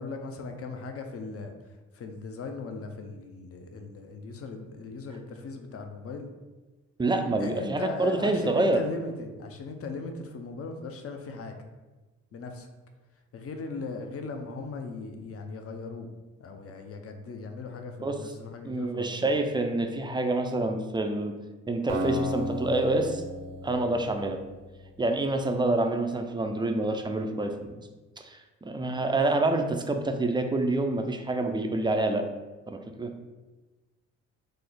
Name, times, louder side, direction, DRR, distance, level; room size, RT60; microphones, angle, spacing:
voice 1, 0.0-6.3 7.4-11.6 12.3-12.7 13.3-16.1 16.4-19.3, left 3 dB, 40° left, 5 dB, 0.6 m, -38 dB
voice 2, 7.0-8.8 18.0-18.2 18.6-21.3 21.7-23.2 23.6-24.4 25.0-27.8 28.2-32.2 32.7-33.1, right 2 dB, 15° right, 5 dB, 0.3 m, -27 dB
Acoustic guitar, 21.9-25.1, equal, 75° right, 0.7 m, -34 dB
3.2 x 2.0 x 3.7 m, 1.2 s
hypercardioid pair, 45°, 35 cm